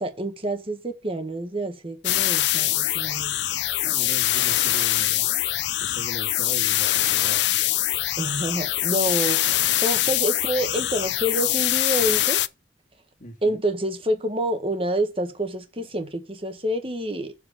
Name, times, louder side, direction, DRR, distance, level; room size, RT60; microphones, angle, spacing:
voice 1, 0.0-3.4 8.2-12.4 13.4-17.3, right 1 dB, 30° right, 1.6 m, -28 dB
sound 1, 2.0-12.5, left 14 dB, 70° left, 0.5 m, -23 dB
voice 2, 3.8-5.3 5.8-7.5 10.4-10.5 13.2-13.6 15.8-15.9, left 1 dB, 45° left, 2.2 m, -39 dB
7.5 x 4.3 x 6.8 m
head